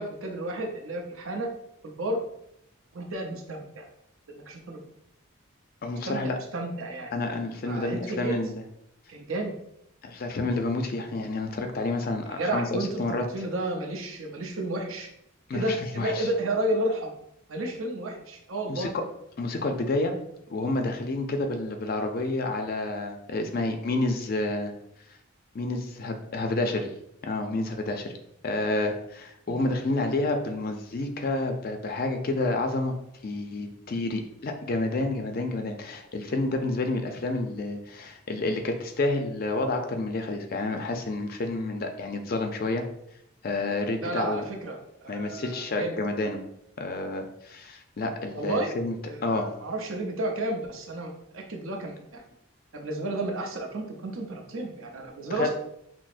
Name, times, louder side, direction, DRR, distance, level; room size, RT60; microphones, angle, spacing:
voice 1, 0.0-1.5 1.8-2.2 2.9-3.8 4.3-4.8 6.0-7.1 7.6-8.4 9.1-9.5 12.4-15.1 15.5-17.1 17.5-18.9 29.5-29.6 44.0-46.0 48.3-48.8 49.0-49.3 49.6-52.2 52.7-55.5, right 1 dB, 80° right, 1 dB, 0.7 m, -32 dB
voice 2, 5.8-6.4 7.1-8.6 10.0-13.3 15.5-16.3 18.7-18.9 19.4-20.1 20.5-24.7 25.5-26.9 27.2-28.1 28.4-32.9 33.2-42.8 43.4-44.4 45.1-46.4 46.8-48.9 49.2-49.5 55.3-55.5, left 2 dB, 45° left, 5 dB, 0.4 m, -29 dB
6.0 x 2.0 x 2.5 m, 0.76 s
head